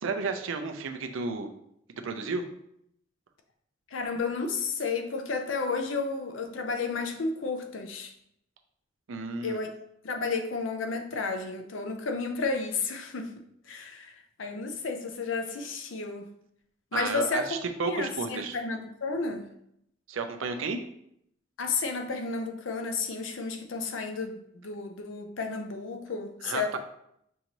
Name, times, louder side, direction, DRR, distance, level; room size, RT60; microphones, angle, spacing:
voice 1, 0.0-1.5 2.0-2.4 9.1-9.6 16.9-18.6 20.1-20.8 26.4-26.8, right 4 dB, 85° right, 6 dB, 0.5 m, -32 dB
voice 2, 3.9-8.1 9.4-9.7 10.0-16.3 16.9-17.6 17.9-19.5 21.6-26.8, left 4 dB, 80° left, 5 dB, 0.6 m, -32 dB
5.6 x 2.6 x 2.9 m, 0.74 s
head